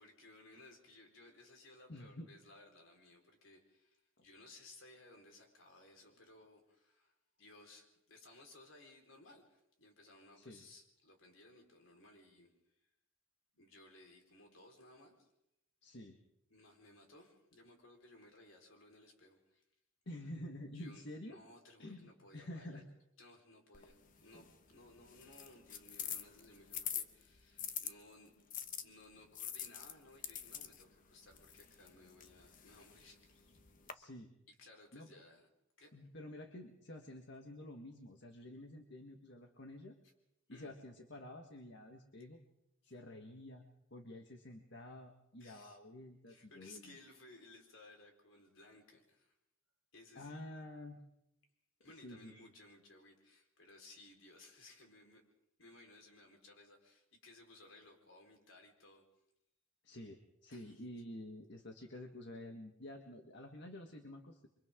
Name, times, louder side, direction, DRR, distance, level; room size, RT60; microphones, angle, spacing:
voice 1, 0.0-12.5 13.5-15.3 16.5-19.6 20.7-22.8 23.2-28.3 28.8-33.6 34.6-35.5 35.8-35.9 40.0-40.1 40.5-40.8 42.8-42.9 45.4-45.8 46.3-49.3 49.9-50.6 51.8-55.2 55.6-59.0 60.5-60.8, left 2 dB, 75° left, 1 dB, 4.7 m, -60 dB
voice 2, 1.9-2.3 10.4-10.6 15.8-16.2 20.0-21.4 21.8-22.9 33.9-34.3 34.9-35.1 35.9-39.9 40.5-42.4 42.8-43.6 43.9-47.0 50.1-51.0 52.0-52.5 59.8-64.5, left 1 dB, 60° left, 3 dB, 1.7 m, -50 dB
sound 1, 23.7-27.9 28.5-33.9, left 9 dB, 45° left, 1.1 m, -46 dB
29.5 x 24.5 x 3.8 m, 0.83 s
head